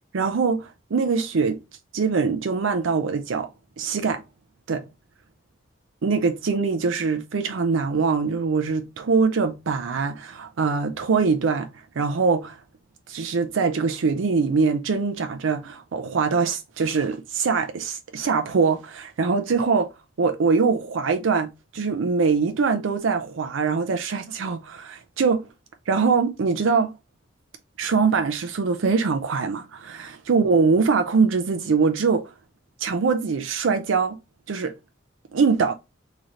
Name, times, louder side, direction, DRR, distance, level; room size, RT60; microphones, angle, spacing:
voice 1, 0.1-1.6 1.9-3.5 3.8-4.2 4.7-4.8 6.0-11.7 12.0-12.6 13.1-19.9 20.2-25.5 25.9-27.0 27.8-32.3 32.8-34.2 34.5-34.7 35.3-35.7, right 5 dB, 80° right, 0.5 m, -23 dB
3.1 x 2.8 x 3.6 m
head